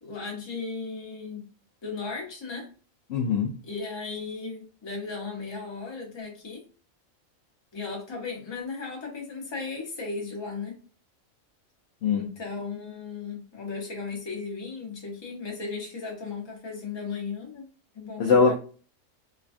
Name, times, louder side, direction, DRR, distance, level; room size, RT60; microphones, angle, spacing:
voice 1, 0.0-1.4 1.8-2.7 3.6-6.6 7.7-10.8 12.1-17.7 17.9-18.5, left 4 dB, 25° left, 0 dB, 0.7 m, -36 dB
voice 2, 3.1-3.5 12.0-12.3 18.2-18.5, left 5 dB, 65° left, -1 dB, 0.7 m, -21 dB
3.3 x 2.2 x 2.4 m, 0.38 s
omnidirectional pair, 1.4 m